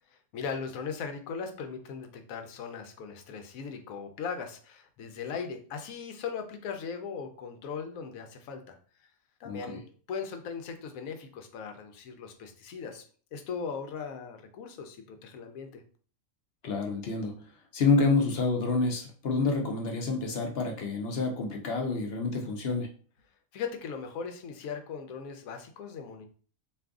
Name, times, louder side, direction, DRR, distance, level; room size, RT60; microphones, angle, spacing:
voice 1, 0.3-8.8 9.4-9.8 10.1-13.0 13.3-15.8 23.5-26.3, left 6 dB, 80° left, 6 dB, 1.0 m, -38 dB
voice 2, 9.4-9.8 16.6-17.4 17.7-22.9, left 3 dB, 60° left, 2 dB, 0.7 m, -28 dB
2.6 x 2.5 x 3.5 m, 0.42 s
omnidirectional pair, 1.5 m